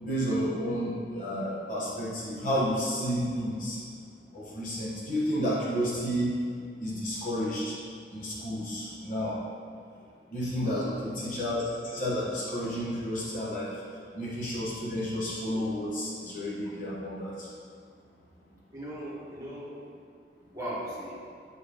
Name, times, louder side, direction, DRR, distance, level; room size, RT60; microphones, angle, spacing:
voice 1, 0.0-3.8 4.3-6.3 6.8-7.8 8.1-9.4 10.3-13.7 14.1-17.5, equal, 45° left, -7 dB, 1.1 m, -31 dB
voice 2, 10.6-11.3 18.7-19.7 20.5-21.2, right 1 dB, 20° right, -7 dB, 1.4 m, -38 dB
6.6 x 4.2 x 3.6 m, 2.2 s
head